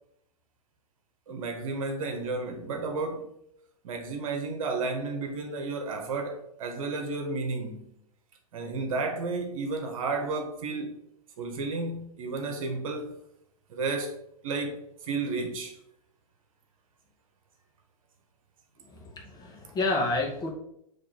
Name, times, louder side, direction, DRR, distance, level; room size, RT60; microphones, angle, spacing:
voice 1, 1.3-3.3 3.8-8.0 8.5-11.0 11.4-13.2 13.7-14.1 14.4-15.8, right 3 dB, 60° right, 1.3 m, -32 dB
voice 2, 18.8-20.5, left 2 dB, 20° left, 1.5 m, -30 dB
6.6 x 3.3 x 4.5 m
hypercardioid pair, 110°, 19 cm